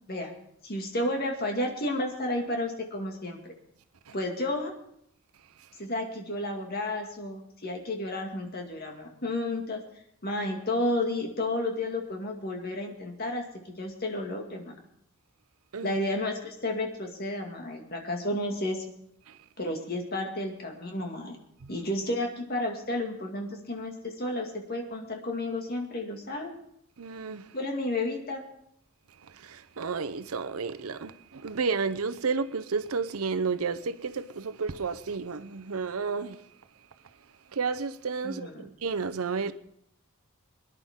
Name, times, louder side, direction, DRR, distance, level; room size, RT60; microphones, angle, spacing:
voice 1, 0.6-3.5 4.1-4.7 5.8-9.8 10.2-14.7 15.8-18.8 19.6-21.4 21.7-26.5 27.5-28.4 38.2-38.7, left 1 dB, 45° left, 2.1 m, -32 dB
voice 2, 27.0-27.4 29.4-36.4 37.5-39.5, right 5 dB, 80° right, 0.7 m, -31 dB
22.5 x 10.5 x 3.7 m
head